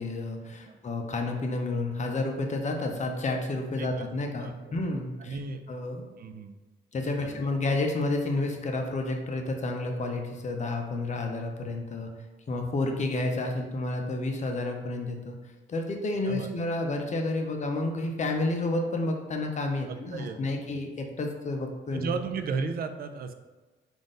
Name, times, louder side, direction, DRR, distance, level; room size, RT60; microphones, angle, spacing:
voice 1, 0.0-5.4 5.7-6.0 6.9-12.1 12.5-15.4 15.7-22.1, left 2 dB, 35° left, 3 dB, 0.6 m, -30 dB
voice 2, 4.4-4.8 5.2-5.6 6.2-6.6 7.2-7.5 16.3-16.5 19.9-20.4 21.9-23.3, right 5 dB, 50° right, 8 dB, 0.4 m, -35 dB
3.7 x 2.5 x 3.7 m, 1.3 s
cardioid pair, 90°, 20 cm